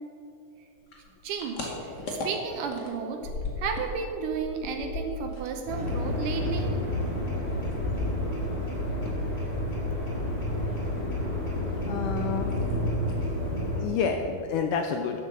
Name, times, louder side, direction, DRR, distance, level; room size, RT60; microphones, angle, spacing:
sound 1, 0.9-8.7 9.0-11.8 12.0-12.7 13.0-13.3 13.6-13.7 14.0-14.6, left 3 dB, 40° left, 1.7 m, -38 dB
voice 1, 1.2-3.2 3.6-6.7, right 6 dB, 75° right, 4 dB, 2.2 m, -33 dB
sound 2, 5.7-13.8, left 1 dB, 15° left, 3.0 m, -30 dB
voice 2, 11.9-12.6 13.8-15.3, left 6 dB, 80° left, 5 dB, 1.9 m, -29 dB
11.0 x 9.2 x 7.7 m, 2.8 s
omnidirectional pair, 4.3 m